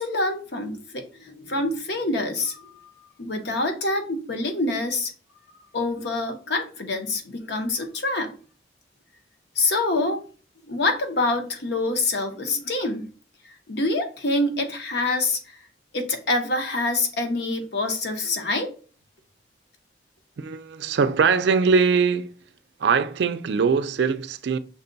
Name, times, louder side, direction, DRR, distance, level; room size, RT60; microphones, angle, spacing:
voice 1, 0.0-2.9 3.2-5.1 5.7-8.3 9.6-10.2 10.7-13.1 13.7-15.4 15.9-18.7, left 2 dB, 65° left, 0.8 m, -26 dB
voice 2, 20.4-22.3 22.8-24.6, right 5 dB, 70° right, 0.4 m, -21 dB
5.8 x 2.2 x 3.8 m
head